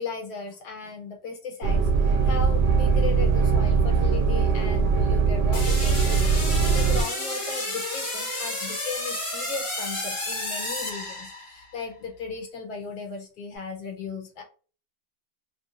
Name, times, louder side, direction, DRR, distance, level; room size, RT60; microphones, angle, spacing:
voice 1, 0.0-14.4, left 5 dB, 70° left, 3 dB, 1.0 m, -36 dB
sound 1, 1.6-7.0, right 5 dB, 75° right, 1.2 m, -21 dB
sound 2, 5.5-11.7, left 1 dB, 20° left, 0.9 m, -31 dB
2.9 x 2.5 x 2.6 m, 0.39 s
omnidirectional pair, 1.9 m